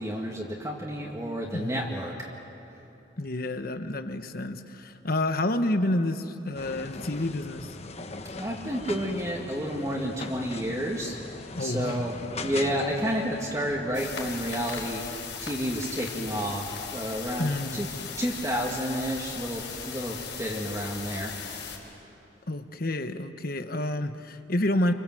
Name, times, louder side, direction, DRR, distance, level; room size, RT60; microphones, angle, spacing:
voice 1, 0.0-2.1 8.4-11.1 11.6-17.9 18.2-21.3, equal, 20° right, -2 dB, 2.2 m, -31 dB
voice 2, 1.5-1.9 3.2-7.7 11.6-12.0 17.4-17.8 22.5-24.9, left 1 dB, 55° left, 8 dB, 1.3 m, -29 dB
sound 1, 6.5-14.9, left 3 dB, 35° left, 1.1 m, -40 dB
sound 2, 13.9-21.8, left 6 dB, 75° left, 5.3 m, -38 dB
29.0 x 25.5 x 7.8 m, 2.8 s
head